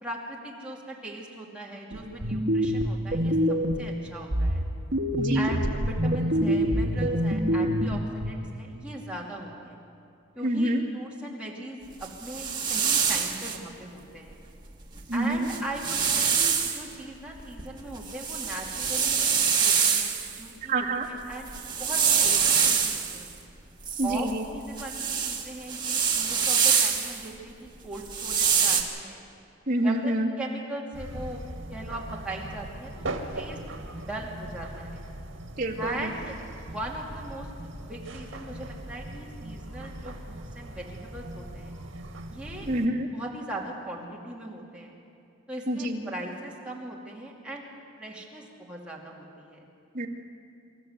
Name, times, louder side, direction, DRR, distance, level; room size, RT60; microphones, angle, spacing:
voice 1, 0.0-4.7 5.3-9.8 10.4-14.4 15.1-21.5 21.8-23.4 24.0-29.2 29.8-31.4 31.7-33.1 33.3-33.6 33.8-35.1 35.8-36.4 36.6-37.5 37.8-41.7 42.3-42.7 43.0-45.0 45.5-47.7 48.0-49.7, right 1 dB, 5° right, -4 dB, 2.7 m, -39 dB
sound 1, 1.9-3.9 4.3-8.3, equal, 60° right, 1.5 m, -26 dB
voice 2, 10.4-10.8 15.1-15.5 20.7-21.1 24.0-24.5 29.7-30.3 35.6-36.1 42.7-43.1 45.7-46.1 49.9-50.1, right 1 dB, 40° right, -3 dB, 2.2 m, -27 dB
sound 2, 12.0-13.6 15.0-15.1 15.4-16.8 17.4-20.4 21.3-23.2 23.8-27.2 28.0-28.8, right 6 dB, 20° right, 1.6 m, -25 dB
sound 3, 30.9-42.9, right 1 dB, 80° right, 1.7 m, -39 dB
25.5 x 13.5 x 8.1 m, 2.6 s
head